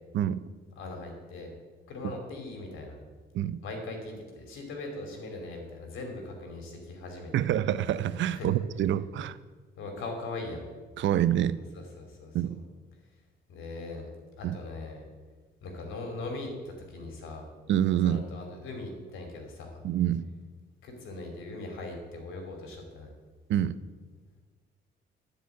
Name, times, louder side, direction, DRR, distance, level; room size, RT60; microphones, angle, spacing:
voice 1, 0.8-1.5 1.9-3.0 3.6-7.5 8.3-8.5 9.8-10.6 12.0-12.3 13.5-14.1 14.4-15.0 15.6-17.5 18.0-19.8 20.8-23.1, left 2 dB, 85° left, 3 dB, 2.6 m, -40 dB
voice 2, 7.3-9.3 11.0-11.6 12.3-12.6 14.4-14.6 17.7-18.2 19.8-20.2 23.5-23.8, right 11 dB, 70° right, 15 dB, 0.5 m, -26 dB
11.5 x 5.1 x 8.2 m, 1.4 s
cardioid pair, 90°, 20 cm